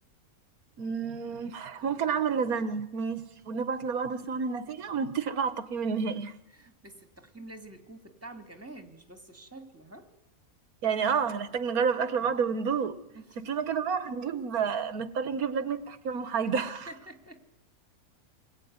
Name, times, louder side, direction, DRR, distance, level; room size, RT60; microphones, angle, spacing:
voice 1, 0.8-6.3 10.8-13.0 13.4-16.9, right 6 dB, 80° right, 1.6 m, -30 dB
voice 2, 6.5-10.1 13.1-13.7 16.8-17.5, right 2 dB, 10° right, 2.4 m, -48 dB
27.5 x 21.5 x 9.6 m
omnidirectional pair, 1.5 m